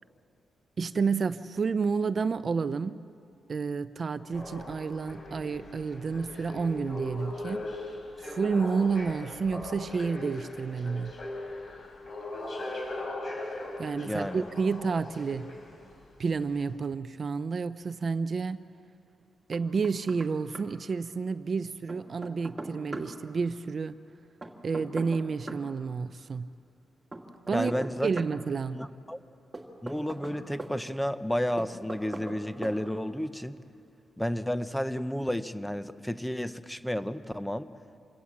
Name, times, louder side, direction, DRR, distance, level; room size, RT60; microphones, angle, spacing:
voice 1, 0.8-3.1 3.5-7.7 8.2-11.1 13.8-15.5 16.2-18.7 19.5-23.9 24.6-26.5 27.5-27.7 28.0-28.8, right 5 dB, 40° right, 13 dB, 0.5 m, -30 dB
sound 1, 4.3-15.9 16.6-16.7, left 2 dB, 45° left, 6.4 m, -39 dB
voice 2, 14.0-14.4 27.5-28.1 28.7-29.2 29.8-33.6 34.2-37.7, equal, 5° left, 12 dB, 0.7 m, -32 dB
Knock, 19.5-20.3 20.5-20.6 21.9-23.1 24.4-25.6 27.1-28.3 29.5-30.7 31.6-32.4 32.6-32.8, right 2 dB, 15° right, 2.0 m, -40 dB
26.5 x 17.0 x 7.3 m, 2.7 s
wide cardioid pair, 145°, 0 cm